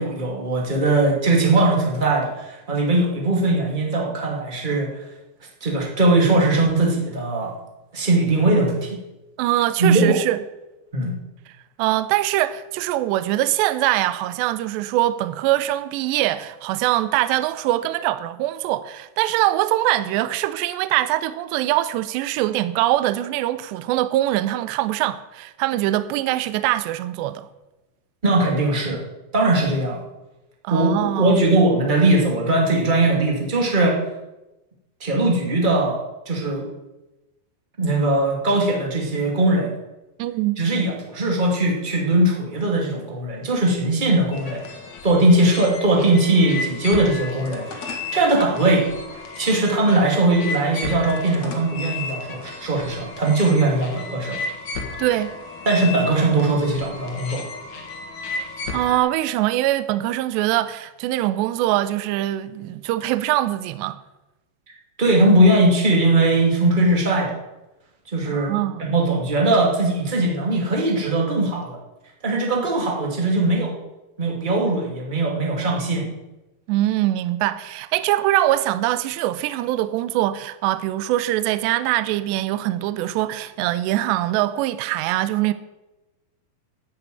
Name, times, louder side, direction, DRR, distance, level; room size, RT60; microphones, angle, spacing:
voice 1, 0.0-4.9 5.6-7.5 7.9-9.0 9.8-10.2 10.9-11.2 28.2-29.0 29.3-30.0 30.7-34.0 35.0-36.0 36.2-36.7 37.8-39.7 40.6-44.6 45.0-48.9 49.4-54.4 55.6-57.4 65.0-67.3 68.1-71.8 72.2-73.7 74.2-76.1, right 2 dB, 25° right, 1.1 m, -20 dB
voice 2, 9.4-10.4 11.8-27.5 30.6-31.4 40.2-40.6 55.0-55.3 58.7-64.0 68.3-68.8 76.7-85.5, right 15 dB, 80° right, 2.7 m, -23 dB
squeaking door loop, 44.3-59.0, left 3 dB, 55° left, 2.3 m, -33 dB
12.5 x 7.6 x 9.2 m
omnidirectional pair, 5.4 m